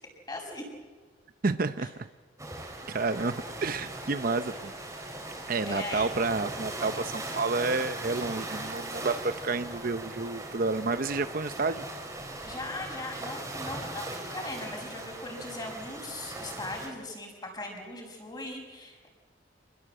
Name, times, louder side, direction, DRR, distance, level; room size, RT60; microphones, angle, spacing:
voice 1, 0.3-0.6 1.8-1.9 5.6-6.1 12.4-19.1, left 2 dB, 20° left, 2 dB, 5.8 m, -39 dB
voice 2, 1.4-1.9 2.9-4.7 5.5-11.8, right 3 dB, 50° right, 11 dB, 0.7 m, -30 dB
sound 1, 2.4-16.9, right 1 dB, 15° right, 3.9 m, -39 dB
27.0 x 21.0 x 7.9 m, 1.4 s
head